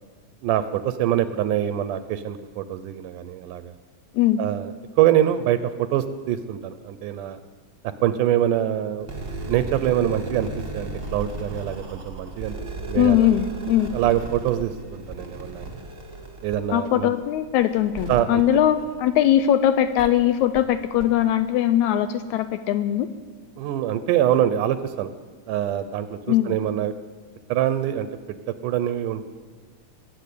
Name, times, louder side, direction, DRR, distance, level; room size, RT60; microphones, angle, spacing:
voice 1, 0.4-3.7 4.4-4.7 5.0-7.4 8.0-9.1 9.5-13.3 13.9-15.7 16.4-17.1 18.1-18.4 23.6-25.1 25.5-26.9 27.5-28.4 28.6-29.3, right 11 dB, 80° right, 12 dB, 2.1 m, -24 dB
sound 1, 9.0-19.4 19.9-20.1 20.5-20.6 21.0-21.1, right 2 dB, 25° right, 1.2 m, -36 dB
voice 2, 12.9-13.9 16.7-23.1 26.3-26.6, left 11 dB, 80° left, 11 dB, 1.7 m, -20 dB
21.0 x 8.1 x 8.4 m, 1.4 s
omnidirectional pair, 3.8 m